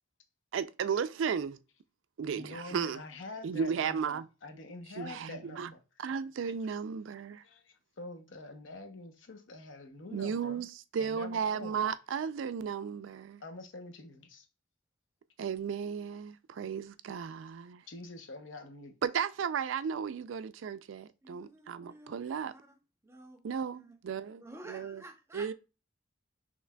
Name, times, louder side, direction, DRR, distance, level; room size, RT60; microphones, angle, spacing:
voice 1, 0.5-1.6 2.2-3.0 3.4-4.2 5.0-5.7 6.0-7.4 10.1-10.7 10.9-13.4 15.4-17.8 19.0-22.5 23.4-24.4 24.7-25.0 25.3-25.5, right 7 dB, 75° right, 0.4 m, -34 dB
voice 2, 2.3-5.8 7.4-10.7 11.0-11.9 13.4-14.5 17.9-18.9, left 2 dB, 75° left, 0.8 m, -46 dB
voice 3, 21.2-22.1 22.4-22.8 23.0-23.4 23.7-24.0 24.3-25.5, right 1 dB, 15° right, 0.7 m, -51 dB
5.8 x 3.1 x 2.2 m
head